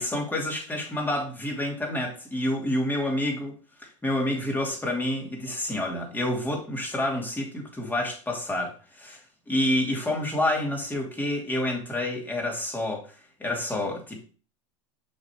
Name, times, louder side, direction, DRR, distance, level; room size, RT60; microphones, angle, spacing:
voice 1, 0.0-3.5 3.8-9.2 9.5-13.1 13.4-14.3, left 1 dB, 10° left, 0 dB, 2.9 m, -28 dB
7.3 x 6.2 x 3.1 m, 0.37 s
hypercardioid pair, 100°, 17 cm